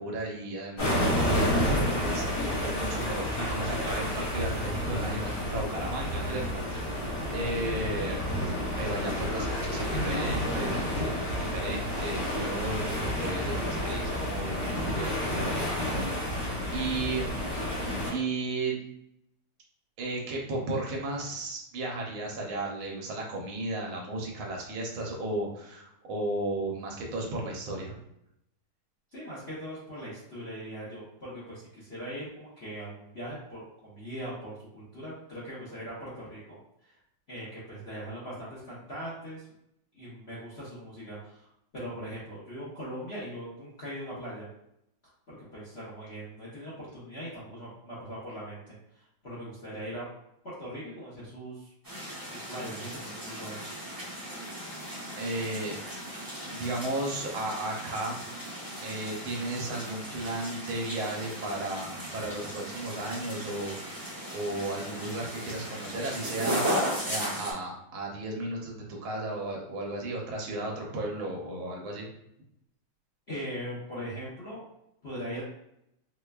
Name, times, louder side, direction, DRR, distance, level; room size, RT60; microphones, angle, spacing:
voice 1, 0.0-8.2 8.5-17.3 18.1-18.7 20.0-28.0 55.2-55.8 56.4-58.2 58.8-72.1, right 2 dB, 70° right, -1 dB, 1.4 m, -35 dB
sound 1, 0.8-18.1, left 1 dB, 80° left, 2.4 m, -30 dB
Ocean, 1.3-12.0, right 3 dB, 90° right, 1.5 m, -42 dB
voice 2, 29.1-36.6 36.8-36.9 37.3-39.5 39.9-41.5 41.7-44.5 45.3-50.0 50.4-51.7 52.3-53.6 73.3-74.6 75.0-75.4, equal, 45° left, -9 dB, 0.8 m, -40 dB
sound 2, 51.8-67.5, equal, 15° right, 0.8 m, -36 dB
4.9 x 2.2 x 2.3 m, 0.80 s
omnidirectional pair, 2.3 m